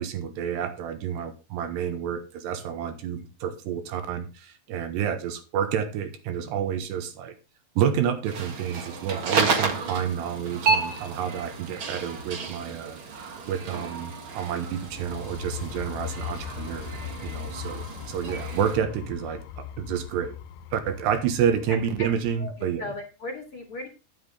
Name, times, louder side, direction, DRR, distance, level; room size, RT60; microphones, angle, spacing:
voice 1, 0.0-7.3 7.8-16.9 17.2-20.4 20.7-22.9, right 8 dB, 75° right, 8 dB, 3.4 m, -29 dB
sound 1, 8.3-18.8, right 4 dB, 60° right, 1.3 m, -31 dB
sound 2, 14.8-22.4, left 10 dB, 80° left, 2.8 m, -39 dB
voice 2, 21.7-22.1 22.4-23.9, left 2 dB, 40° left, 3 dB, 2.2 m, -37 dB
11.5 x 9.6 x 3.4 m, 0.30 s
omnidirectional pair, 5.0 m